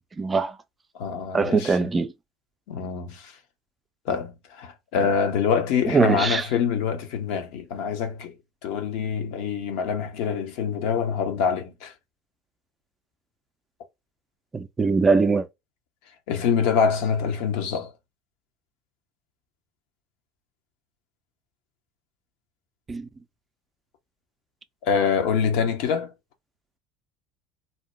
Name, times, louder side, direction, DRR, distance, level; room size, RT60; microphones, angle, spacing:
voice 1, 0.2-0.6 1.3-2.1 5.9-6.5 14.5-15.5 22.9-23.1, right 4 dB, 25° right, 0.4 m, -22 dB
voice 2, 0.9-1.7 2.7-3.3 4.1-8.3 8.6-11.9 16.3-17.9 24.8-26.1, left 6 dB, 70° left, 0.7 m, -25 dB
2.7 x 2.0 x 3.1 m
hypercardioid pair, 70°, 0 cm